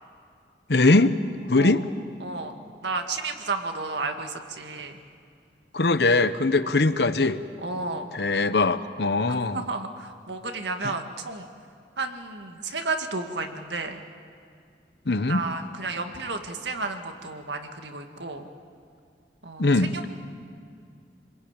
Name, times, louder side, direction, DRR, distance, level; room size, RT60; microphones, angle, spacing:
voice 1, 0.7-1.2 1.5-1.9 5.7-7.4 8.1-9.6 10.8-10.9 15.1-15.4 19.6-20.1, left 2 dB, 70° left, 12 dB, 1.0 m, -21 dB
voice 2, 2.2-5.0 6.6-6.7 7.6-8.1 9.3-11.5 12.0-14.0 15.3-18.5 19.4-20.1, right 3 dB, 80° right, 5 dB, 1.9 m, -32 dB
27.5 x 21.0 x 8.9 m, 2.3 s
head